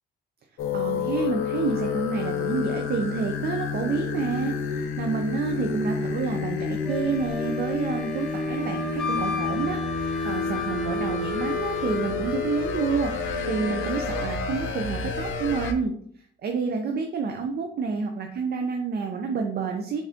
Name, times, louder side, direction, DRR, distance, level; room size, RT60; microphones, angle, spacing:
sound 1, 0.6-15.7, left 5 dB, 85° left, 0.7 m, -29 dB
voice 1, 0.7-15.9 16.4-20.0, right 5 dB, 55° right, 4 dB, 0.6 m, -29 dB
Wind instrument woodwind instrument, 6.8-14.3, left 3 dB, ahead, 0.7 m, -35 dB
4.1 x 4.1 x 2.8 m, 0.63 s
cardioid pair, 90°, 20 cm